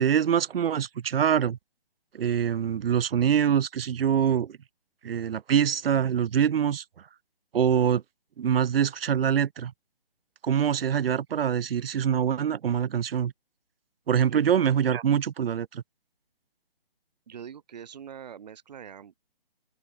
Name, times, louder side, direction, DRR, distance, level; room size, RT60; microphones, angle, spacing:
voice 1, 0.0-1.6 2.1-4.6 5.0-6.8 7.5-8.0 8.4-9.7 10.4-13.3 14.1-15.8, right 8 dB, 70° right, 0.5 m, -24 dB
voice 2, 17.3-19.1, right 8 dB, 45° right, 1.6 m, -43 dB
open air
hypercardioid pair, 155°, 30 cm